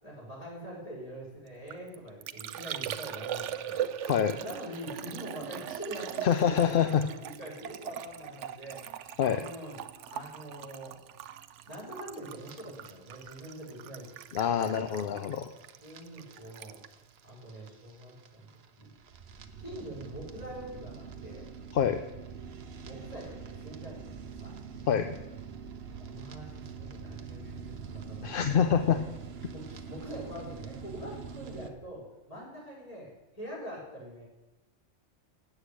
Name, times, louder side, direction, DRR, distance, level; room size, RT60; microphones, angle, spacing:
voice 1, 0.0-4.1 4.4-9.0 9.3-9.8 10.1-11.0 11.6-14.1 14.5-15.4 15.8-16.8 17.2-18.9 19.6-21.4 22.8-24.5 26.0-29.0 29.5-34.3, equal, 30° left, -5 dB, 4.7 m, -44 dB
Liquid, 1.5-18.1 18.3-18.9, right 10 dB, 85° right, 0.9 m, -41 dB
voice 2, 4.0-4.4 6.2-7.0 9.2-9.4 14.3-15.5 21.7-22.0 24.9-25.2 28.2-29.0, left 8 dB, 55° left, 8 dB, 0.7 m, -26 dB
sound 1, 12.3-31.7, right 6 dB, 60° right, 1.1 m, -45 dB
8.2 x 8.0 x 8.3 m, 1.0 s
omnidirectional pair, 1.2 m